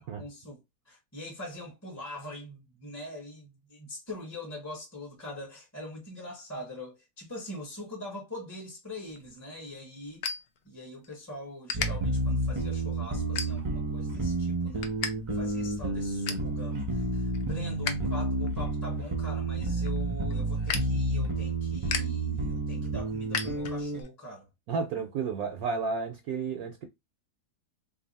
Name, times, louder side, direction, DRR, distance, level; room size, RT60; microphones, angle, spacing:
voice 1, 0.2-0.6 0.9-10.2 10.6-14.9 15.3-24.5, left 1 dB, 10° left, 0.9 m, -42 dB
sound 1, 9.1-11.1 11.4-11.9 12.4-12.7 13.2-13.9 14.3-15.1 15.4-15.5 15.9-16.5 17.0-17.9 18.3-24.1, left 6 dB, 90° left, 0.5 m, -36 dB
sound 2, 11.7-24.0, right 2 dB, 30° right, 0.5 m, -30 dB
voice 2, 24.7-26.9, right 5 dB, 65° right, 1.0 m, -32 dB
2.7 x 2.7 x 4.0 m
omnidirectional pair, 1.8 m